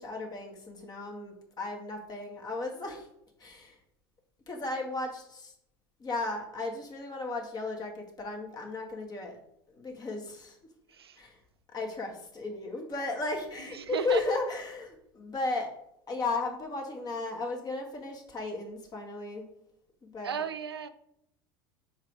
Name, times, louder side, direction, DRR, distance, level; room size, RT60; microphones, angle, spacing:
voice 1, 0.0-3.1 3.4-3.7 4.5-5.5 6.0-9.4 9.7-10.6 11.2-11.4 11.7-15.7 16.1-19.5 20.0-20.4, left 3 dB, 30° left, 1.8 m, -35 dB
voice 2, 10.9-11.2 13.7-14.2 20.2-20.9, right 7 dB, 85° right, 0.4 m, -34 dB
4.9 x 4.6 x 4.7 m
hypercardioid pair, 75°, 13 cm